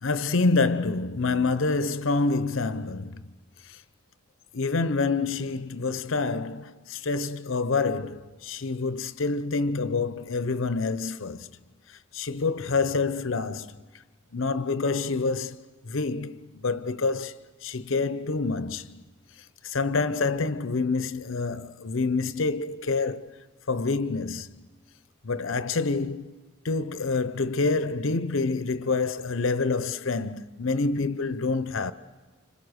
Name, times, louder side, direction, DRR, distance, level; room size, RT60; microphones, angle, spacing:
voice 1, 0.0-3.2 3.7-3.8 4.5-11.5 12.1-13.7 14.3-19.0 19.6-23.3 23.7-24.7 25.2-26.3 26.6-31.9, left 3 dB, 70° left, 0.7 m, -27 dB
30.0 x 26.0 x 6.5 m
head